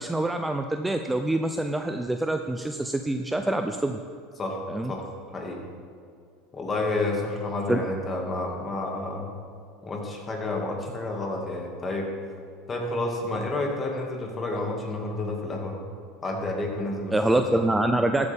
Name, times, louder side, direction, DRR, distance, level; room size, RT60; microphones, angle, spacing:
voice 1, 0.0-4.0 4.7-4.9 7.7-7.8 17.1-18.3, right 2 dB, 10° right, 6 dB, 0.5 m, -25 dB
voice 2, 6.5-9.3 9.8-12.1 12.7-15.8 16.2-17.6, left 2 dB, 25° left, 0 dB, 2.1 m, -30 dB
14.0 x 8.4 x 3.6 m, 2.3 s
supercardioid pair, 115°, 0 cm